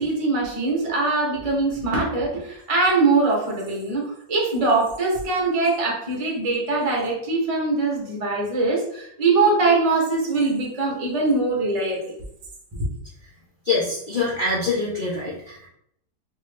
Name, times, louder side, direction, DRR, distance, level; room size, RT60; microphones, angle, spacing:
voice 1, 0.0-12.2, right 3 dB, 30° right, -3 dB, 0.7 m, -22 dB
voice 2, 13.6-15.7, left 3 dB, 80° left, -5 dB, 0.4 m, -25 dB
3.3 x 2.7 x 3.2 m, 0.72 s
omnidirectional pair, 1.8 m